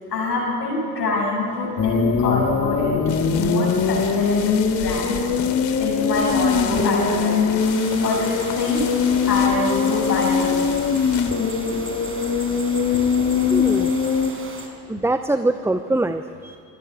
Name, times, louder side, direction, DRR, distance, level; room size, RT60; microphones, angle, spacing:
voice 1, 0.1-3.0 3.3-5.3 5.8-7.4 8.0-10.7 13.1-13.2, left 2 dB, 80° left, -1 dB, 7.3 m, -25 dB
sound 1, 1.8-14.3, left 6 dB, 30° left, 2.6 m, -21 dB
sound 2, 3.1-11.3, left 9 dB, 60° left, 3.1 m, -34 dB
sound 3, 7.6-14.7, right 2 dB, 25° right, 5.5 m, -37 dB
voice 2, 13.5-13.9 14.9-16.6, right 2 dB, 5° right, 10 dB, 0.9 m, -23 dB
25.0 x 19.5 x 9.6 m, 2.4 s
figure-of-eight pair, 65°, 48 cm